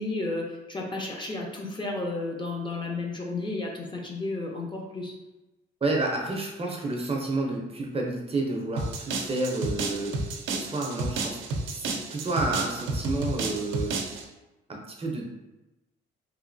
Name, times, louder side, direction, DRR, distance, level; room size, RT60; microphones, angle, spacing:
voice 1, 0.0-5.1, left 2 dB, 25° left, 0 dB, 0.6 m, -32 dB
voice 2, 5.8-14.1 14.7-15.3, right 2 dB, 30° right, 0 dB, 0.6 m, -30 dB
sound 1, 8.8-14.2, right 3 dB, 80° right, 0.5 m, -31 dB
3.0 x 2.7 x 2.5 m, 1.0 s
cardioid pair, 90°, 20 cm